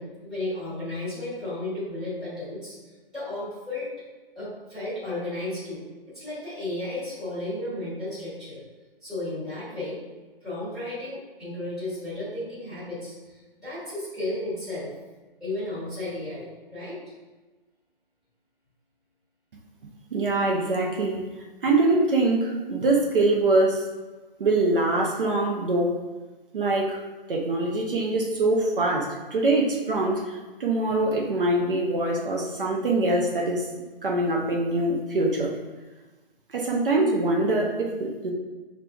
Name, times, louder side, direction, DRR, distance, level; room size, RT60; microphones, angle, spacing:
voice 1, 0.0-2.8 3.1-3.9 4.3-5.9 6.1-8.6 9.0-10.0 10.4-13.1 13.6-14.9 15.4-17.0, left 2 dB, ahead, -15 dB, 1.2 m, -33 dB
voice 2, 20.1-21.2 21.6-23.8 24.4-25.9 26.5-27.0 27.3-33.7 34.0-35.5 36.5-38.3, right 2 dB, 60° right, -1 dB, 0.7 m, -24 dB
6.0 x 2.5 x 2.3 m, 1.2 s
figure-of-eight pair, 150°, 30 cm